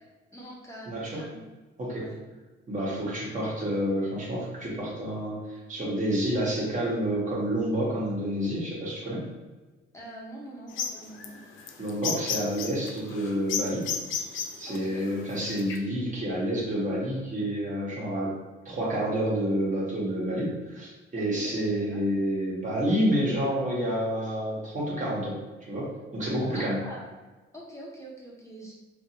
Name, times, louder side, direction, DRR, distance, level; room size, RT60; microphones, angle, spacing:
voice 1, 0.3-1.4 2.0-2.2 9.9-11.4 14.7-15.2 21.2-22.0 26.5-27.1 27.5-28.7, right 1 dB, 15° left, -4 dB, 0.7 m, -44 dB
voice 2, 0.9-1.4 1.8-2.1 2.7-9.3 11.8-13.9 14.6-18.4 18.6-25.4 25.7-26.8, equal, 40° right, -4 dB, 1.1 m, -29 dB
sound 1, 10.7-15.8, left 6 dB, 80° left, 0.4 m, -33 dB
2.7 x 2.6 x 2.8 m, 1.2 s
cardioid pair, 90°, 20 cm